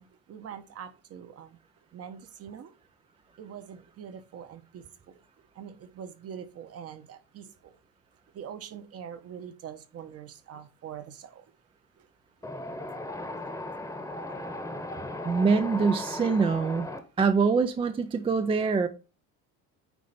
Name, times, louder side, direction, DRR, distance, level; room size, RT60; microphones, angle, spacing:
voice 1, 0.0-1.5 1.9-2.7 3.4-4.8 5.6-7.5 8.3-11.4, right 8 dB, 40° right, 1.0 m, -43 dB
Wind, 12.4-17.0, left 1 dB, 10° left, 1.0 m, -37 dB
voice 2, 15.2-16.9 17.2-18.9, right 5 dB, 15° right, 0.4 m, -24 dB
9.3 x 3.2 x 5.6 m
cardioid pair, 145°, 36 cm